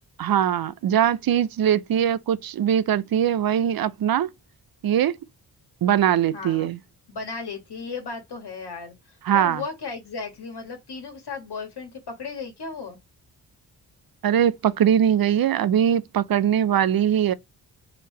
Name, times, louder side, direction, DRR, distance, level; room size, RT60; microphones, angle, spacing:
voice 1, 0.2-4.3 4.8-5.1 5.8-6.8 9.3-9.6 14.2-17.3, right 9 dB, 50° right, 0.6 m, -21 dB
voice 2, 6.3-6.8 7.1-13.0, left 4 dB, 60° left, 1.6 m, -35 dB
4.8 x 3.1 x 3.2 m
supercardioid pair, 40°, 45 cm